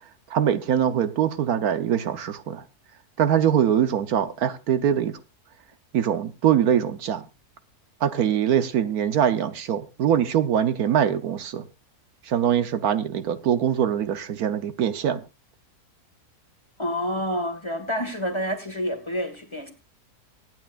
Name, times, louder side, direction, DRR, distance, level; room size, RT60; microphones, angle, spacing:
voice 1, 0.3-2.6 3.2-5.2 5.9-7.2 8.0-11.6 12.2-15.2, right 9 dB, 75° right, 1.3 m, -23 dB
voice 2, 16.8-19.7, equal, 20° left, 1.7 m, -28 dB
24.5 x 9.3 x 2.5 m
omnidirectional pair, 1.6 m